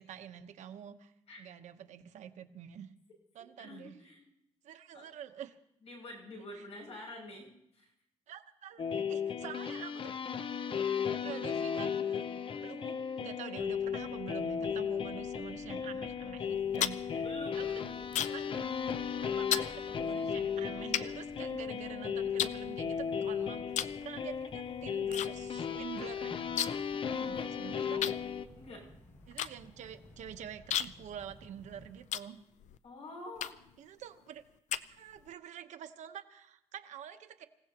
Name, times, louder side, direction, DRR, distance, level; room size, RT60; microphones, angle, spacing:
voice 1, 0.0-1.1 1.4-2.9 3.3-4.0 4.6-5.6 6.6-6.7 8.3-10.1 11.2-12.2 12.6-17.2 17.5-17.9 18.2-18.6 19.2-26.5 27.2-28.1 29.3-32.4 33.8-34.4 35.0-37.4, right 9 dB, 90° right, 8 dB, 1.0 m, -47 dB
voice 2, 3.6-4.3 4.7-5.1 5.8-7.9 17.2-18.1 27.2-28.0 28.6-28.9 32.8-33.6, left 1 dB, 65° left, -1 dB, 7.0 m, -48 dB
sound 1, 8.8-28.5, left 7 dB, 50° left, 0.7 m, -35 dB
sound 2, 13.6-31.9, equal, 15° left, 3.9 m, -57 dB
sound 3, 16.5-18.5 18.8-19.1 19.5-19.7 20.4-20.5 20.9-21.9 22.4-23.2 23.7-24.0 24.3-25.3 25.6-25.7 25.9-26.9 27.2-27.3 28.0-32.8 33.4-33.8 34.3-35.3, left 10 dB, 90° left, 0.5 m, -36 dB
27.0 x 16.5 x 3.0 m, 0.79 s
cardioid pair, 130°, 12 cm